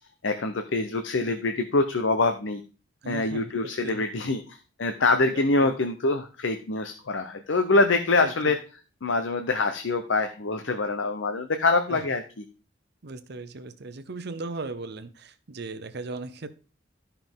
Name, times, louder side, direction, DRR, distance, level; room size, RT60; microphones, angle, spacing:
voice 1, 0.2-2.6 3.1-8.6 9.0-12.4, left 3 dB, 80° left, 7 dB, 0.8 m, -25 dB
voice 2, 3.0-4.1 5.3-5.7 8.2-8.6 11.9-12.0 13.0-16.5, right 3 dB, 60° right, 11 dB, 0.8 m, -37 dB
12.5 x 5.7 x 3.6 m, 0.36 s
head